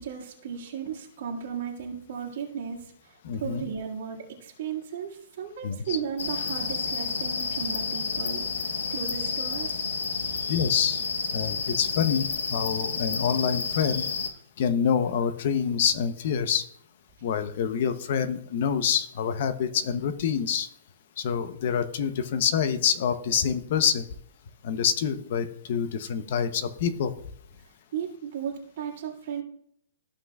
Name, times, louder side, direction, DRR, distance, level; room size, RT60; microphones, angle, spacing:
voice 1, 0.0-9.7 27.9-29.4, right 7 dB, 55° right, -3 dB, 1.8 m, -35 dB
voice 2, 3.2-3.6 5.6-6.0 10.5-11.0 11.3-12.3 12.5-14.0 14.6-16.7 17.2-20.7 21.2-24.1 24.6-27.1, left 7 dB, 50° left, 11 dB, 0.7 m, -26 dB
sound 1, 6.2-14.3, left 5 dB, 80° left, 0.9 m, -30 dB
14.0 x 5.6 x 2.4 m, 0.67 s
hypercardioid pair, 155°, 0 cm